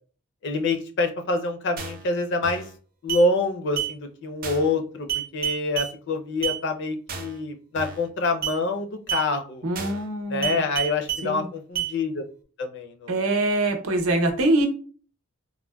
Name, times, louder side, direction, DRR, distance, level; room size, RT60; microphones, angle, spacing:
voice 1, 0.4-2.6 3.0-5.1 5.3-9.7 10.3-12.2 12.6-13.2, left 2 dB, 60° left, 6 dB, 0.5 m, -26 dB
sound 1, 1.8-2.1 2.4-2.7 3.1-3.3 3.8-3.9 4.4-4.7 5.1-5.9 6.4-6.6 7.1-7.4 7.8-8.1 8.4-8.6 9.1-9.3 9.8-10.1 10.4-11.3 11.8-11.9, right 10 dB, 45° right, 0.6 m, -29 dB
voice 2, 9.6-10.6 11.2-11.4 13.1-14.7, right 2 dB, 85° right, 4 dB, 0.6 m, -24 dB
3.7 x 2.1 x 2.2 m, 0.40 s
head